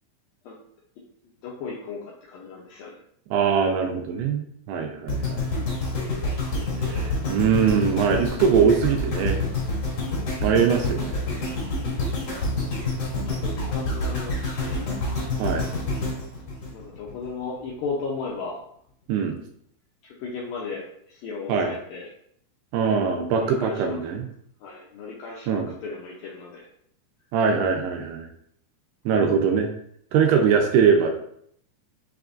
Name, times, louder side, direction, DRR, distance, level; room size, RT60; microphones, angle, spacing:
voice 1, 1.4-2.0 2.3-3.0 10.9-11.1 13.3-14.8 16.7-18.6 20.0-22.1 23.3-24.0 24.6-26.7, left 4 dB, 90° left, -4 dB, 2.0 m, -35 dB
voice 2, 3.3-5.5 6.8-9.4 10.4-11.2 15.4-15.7 19.1-19.4 21.5-21.7 22.7-24.3 25.5-25.7 27.3-28.3 29.1-29.7 30.1-31.1, right 6 dB, 80° right, 4 dB, 2.4 m, -22 dB
sound 1, 5.1-17.3 17.8-17.9, left 2 dB, 55° left, 1.9 m, -28 dB
6.0 x 3.5 x 2.5 m, 0.68 s
omnidirectional pair, 4.9 m